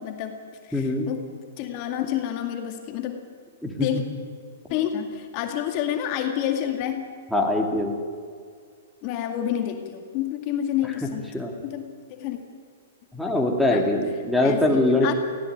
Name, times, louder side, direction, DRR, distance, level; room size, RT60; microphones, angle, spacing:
voice 1, 0.0-3.3 3.8-4.0 4.7-7.1 9.0-11.4 11.6-12.4 13.7-13.9 14.4-15.1, left 10 dB, 40° left, 5 dB, 2.1 m, -29 dB
voice 2, 0.7-1.1 3.6-3.9 7.3-7.9 11.3-11.5 13.1-15.1, left 2 dB, ahead, -1 dB, 2.6 m, -22 dB
18.5 x 16.0 x 9.4 m, 2.1 s
hypercardioid pair, 140°, 0 cm